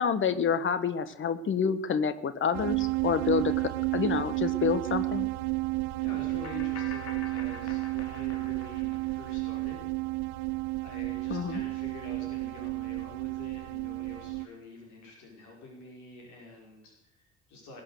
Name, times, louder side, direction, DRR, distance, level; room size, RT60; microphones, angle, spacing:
voice 1, 0.0-5.3 11.3-11.6, left 6 dB, 35° left, 13 dB, 1.5 m, -28 dB
sound 1, 2.5-14.5, right 23 dB, 55° right, 0.7 m, -32 dB
sound 2, 4.4-4.5 6.4-9.3, left 4 dB, 75° left, 2.4 m, -46 dB
voice 2, 6.0-9.9 10.2-10.5 10.8-17.8, left 3 dB, 55° left, -1 dB, 5.5 m, -47 dB
20.5 x 9.0 x 6.7 m, 0.85 s
figure-of-eight pair, 50°, 34 cm